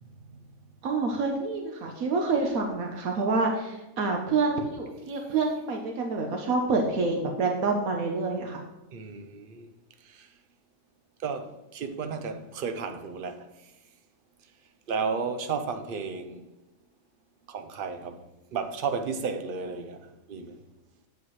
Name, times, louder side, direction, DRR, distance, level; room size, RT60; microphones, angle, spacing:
voice 1, 0.8-8.6, right 3 dB, 80° right, 1.3 m, -27 dB
voice 2, 8.9-9.7 10.0-10.3 11.2-13.5 14.9-16.4 17.5-18.2 18.5-20.6, right 5 dB, 50° right, 0.7 m, -33 dB
9.3 x 7.9 x 3.1 m
omnidirectional pair, 1.5 m